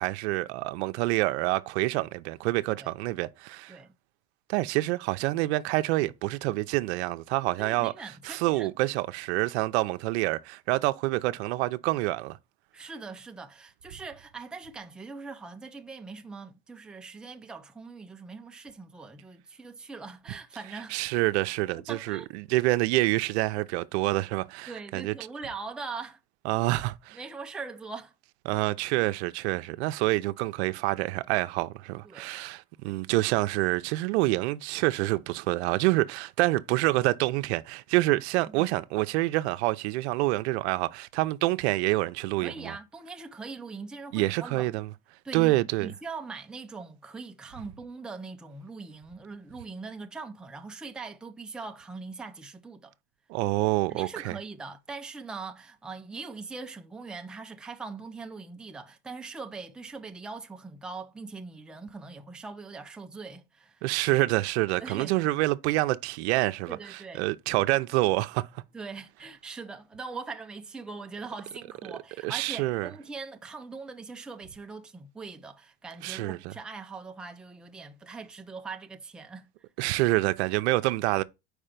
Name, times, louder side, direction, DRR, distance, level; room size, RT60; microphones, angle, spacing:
voice 1, 0.0-3.8 4.5-7.9 8.2-12.4 20.9-25.1 26.4-27.2 28.5-42.8 44.1-44.9 45.3-45.9 53.3-54.4 63.8-68.6 72.2-72.9 76.0-76.5 79.8-81.2, right 19 dB, 80° right, 0.5 m, -27 dB
voice 2, 7.6-8.7 12.7-21.0 21.9-22.3 24.7-26.2 27.1-28.1 32.0-32.3 32.8-32.9 42.4-44.7 45.2-52.9 53.9-63.8 64.8-65.1 66.7-67.2 68.7-79.5, right 4 dB, 5° right, 0.4 m, -41 dB
4.8 x 4.4 x 5.1 m
supercardioid pair, 125°, 32 cm